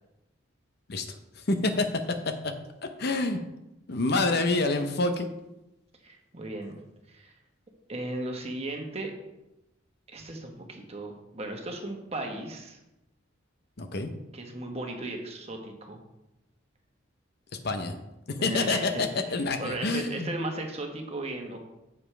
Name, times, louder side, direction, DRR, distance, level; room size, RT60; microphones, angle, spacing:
voice 1, 1.4-2.2 3.0-3.4 3.9-5.3 13.8-14.1 17.6-18.0 18.4-20.3, left 2 dB, 55° left, 7 dB, 0.8 m, -27 dB
voice 2, 6.0-6.8 7.1-7.3 7.9-9.1 10.1-12.8 14.3-16.0 18.4-21.6, right 2 dB, 30° right, 2 dB, 1.3 m, -36 dB
9.5 x 7.3 x 3.4 m, 0.94 s
head